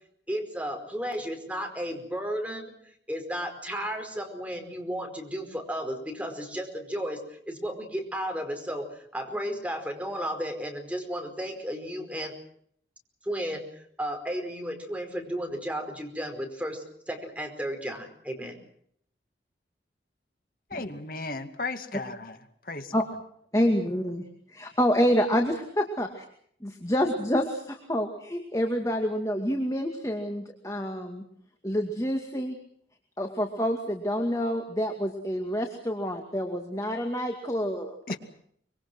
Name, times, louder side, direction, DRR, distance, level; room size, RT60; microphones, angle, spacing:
voice 1, 0.3-12.3 13.2-18.6, equal, 10° right, 4 dB, 4.9 m, -34 dB
voice 2, 20.7-22.4 22.7-22.9 38.1-38.2, left 3 dB, 50° left, 8 dB, 2.3 m, -34 dB
voice 3, 23.5-24.2 24.5-26.2 26.6-31.2 31.6-32.6 33.2-38.0, equal, 20° left, 4 dB, 2.3 m, -27 dB
25.0 x 24.0 x 6.2 m, 0.66 s
head